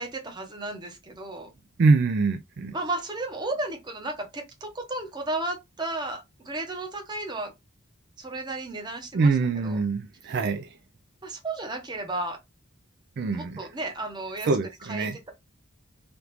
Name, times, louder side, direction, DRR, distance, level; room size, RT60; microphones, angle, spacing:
voice 1, 0.0-1.5 2.7-7.5 8.2-9.3 9.6-9.8 11.2-12.4 13.3-14.5 14.9-15.3, right 2 dB, 20° right, 0.8 m, -33 dB
voice 2, 1.8-2.7 9.1-10.7 13.2-13.6 14.5-15.2, right 4 dB, 50° right, 0.3 m, -24 dB
3.4 x 2.4 x 2.9 m
head